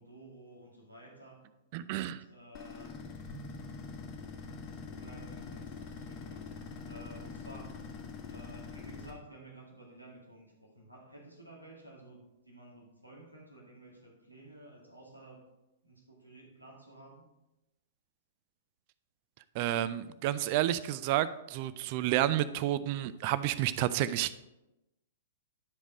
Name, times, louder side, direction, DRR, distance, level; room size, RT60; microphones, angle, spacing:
voice 1, 0.0-1.5 1.9-2.9 4.9-6.5 6.8-7.7 8.3-15.5 15.8-17.2, right 1 dB, 90° right, -2 dB, 2.1 m, -53 dB
voice 2, 1.7-2.2 19.6-24.4, right 13 dB, 40° right, 14 dB, 0.4 m, -30 dB
sound 1, 2.5-9.1, left 4 dB, 30° left, 1.5 m, -44 dB
10.5 x 5.1 x 4.9 m, 0.96 s
figure-of-eight pair, 105°, 0 cm